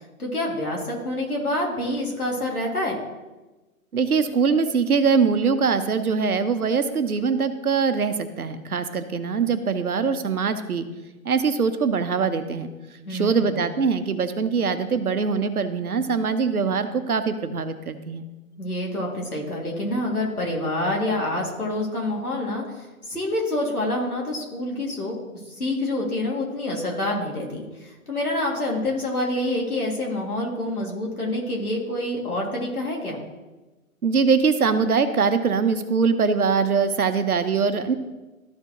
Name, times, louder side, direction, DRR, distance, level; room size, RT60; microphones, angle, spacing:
voice 1, 0.2-3.0 13.0-13.6 18.6-25.2 25.5-33.2, left 1 dB, 90° left, -2 dB, 2.6 m, -27 dB
voice 2, 3.9-10.9 11.2-12.7 13.1-18.2 34.0-37.9, right 5 dB, 80° right, 10 dB, 0.9 m, -22 dB
13.5 x 4.5 x 3.0 m, 1.1 s
figure-of-eight pair, 130°, 43 cm